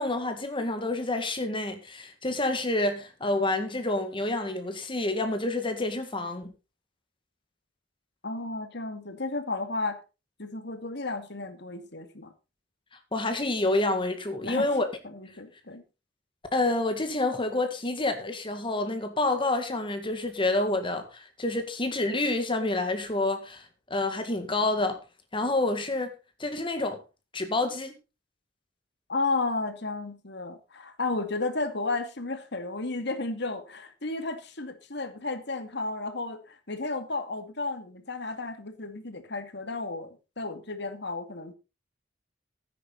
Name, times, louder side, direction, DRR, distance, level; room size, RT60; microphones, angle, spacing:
voice 1, 0.0-6.5 13.1-14.9 16.5-23.6 23.9-25.0 25.3-26.1 26.4-27.0 27.3-27.9, left 2 dB, 30° left, 2.0 m, -28 dB
voice 2, 8.2-10.0 10.4-12.3 14.4-14.7 15.0-15.8 29.1-41.5, left 3 dB, 65° left, 2.3 m, -33 dB
14.5 x 9.9 x 4.0 m
head